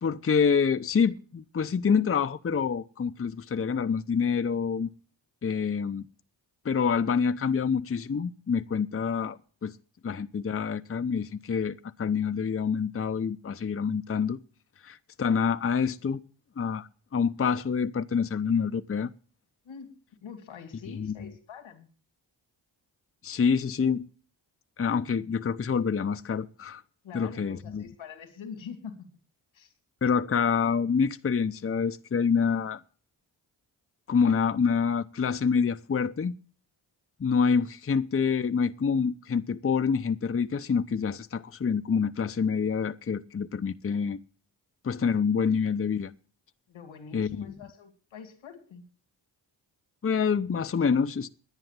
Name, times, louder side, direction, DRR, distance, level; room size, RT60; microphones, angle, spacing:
voice 1, 0.0-4.9 5.4-6.1 6.6-9.7 10.0-14.4 14.8-16.2 16.6-19.1 21.0-21.3 23.2-24.1 24.8-26.8 27.1-27.8 30.0-32.8 34.1-36.4 37.2-44.2 44.8-46.1 47.1-47.5 50.0-51.3, left 6 dB, 30° left, 0.7 m, -27 dB
voice 2, 20.2-21.9 27.0-29.1 29.5-29.7 46.7-48.8, left 6 dB, 85° left, 2.6 m, -44 dB
10.5 x 9.6 x 7.5 m
supercardioid pair, 40°, 46 cm